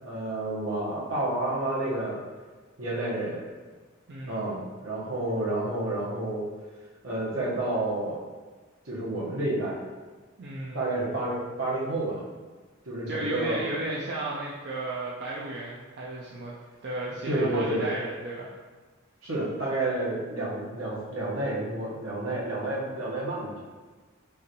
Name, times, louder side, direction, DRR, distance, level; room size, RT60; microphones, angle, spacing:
voice 1, 0.0-2.2 2.8-3.5 4.3-6.5 7.0-8.2 8.8-9.8 10.7-12.2 12.8-13.7 17.2-17.9 19.2-23.5, right 2 dB, 75° right, -5 dB, 1.2 m, -30 dB
voice 2, 4.1-4.6 10.4-11.0 13.1-16.6 16.8-18.5, right 2 dB, 55° right, -5 dB, 0.5 m, -34 dB
5.6 x 2.5 x 3.0 m, 1.4 s
head